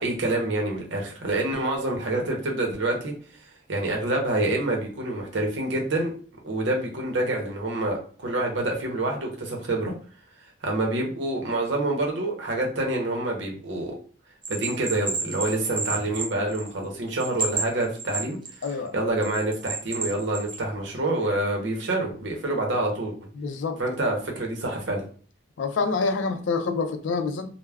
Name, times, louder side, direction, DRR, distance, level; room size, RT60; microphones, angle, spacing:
voice 1, 0.0-3.1 3.7-6.1 6.4-9.9 10.6-13.9 14.5-18.4 18.9-23.1 23.8-25.0, right 2 dB, 75° right, 0.7 m, -27 dB
Bell, 14.4-16.8 17.2-18.7 19.2-20.6, right 4 dB, 25° right, 0.4 m, -30 dB
voice 2, 18.6-18.9 23.4-23.8 25.6-27.5, left 4 dB, 80° left, 0.4 m, -27 dB
2.2 x 2.1 x 3.3 m
head